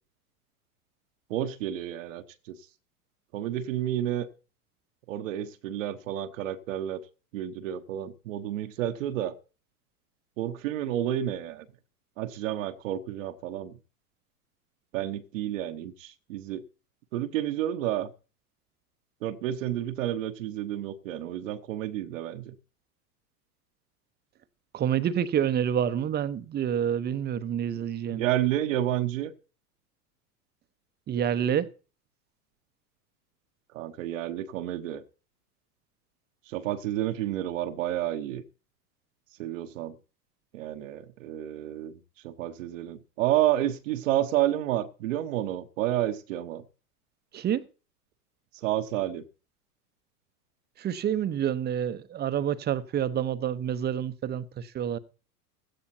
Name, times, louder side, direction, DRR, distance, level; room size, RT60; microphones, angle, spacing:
voice 1, 1.3-2.6 3.3-4.3 5.1-7.0 7.3-9.3 10.4-11.7 12.2-13.8 14.9-16.6 17.1-18.1 19.2-22.5 28.1-29.3 33.7-35.0 36.5-38.4 39.4-40.0 40.5-42.0 42.2-46.6 48.5-49.2, right 12 dB, 55° right, 1.2 m, -30 dB
voice 2, 24.7-28.2 31.1-31.7 47.3-47.6 50.8-55.0, right 9 dB, 20° right, 0.9 m, -28 dB
16.5 x 13.0 x 2.8 m
figure-of-eight pair, 90°, 46 cm